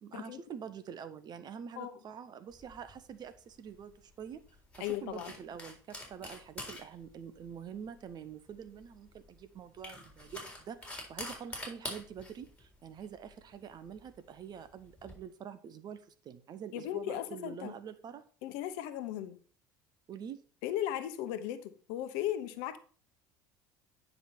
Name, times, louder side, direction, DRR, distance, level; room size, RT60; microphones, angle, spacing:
voice 1, 0.0-4.4 4.7-18.2 20.1-20.4, right 7 dB, 45° right, 1.0 m, -46 dB
sound 1, 2.5-15.1, left 2 dB, 10° left, 3.9 m, -48 dB
voice 2, 4.8-5.3 16.7-17.7 18.4-19.4 20.6-22.8, left 12 dB, 65° left, 0.9 m, -36 dB
9.3 x 5.3 x 4.4 m
hypercardioid pair, 70°, 10 cm